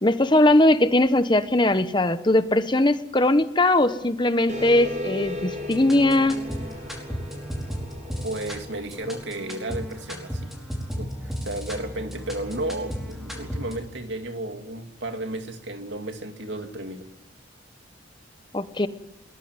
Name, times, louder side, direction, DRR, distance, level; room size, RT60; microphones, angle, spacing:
voice 1, 0.0-6.4 18.5-18.9, left 1 dB, 25° left, 11 dB, 1.0 m, -20 dB
sound 1, 4.5-9.6, left 1 dB, 40° right, 5.3 m, -36 dB
sound 2, 5.5-13.7, equal, ahead, 4.8 m, -35 dB
voice 2, 8.2-10.5 11.0-17.1, right 1 dB, 70° right, 6 dB, 2.4 m, -33 dB
22.0 x 19.0 x 9.6 m, 0.89 s
head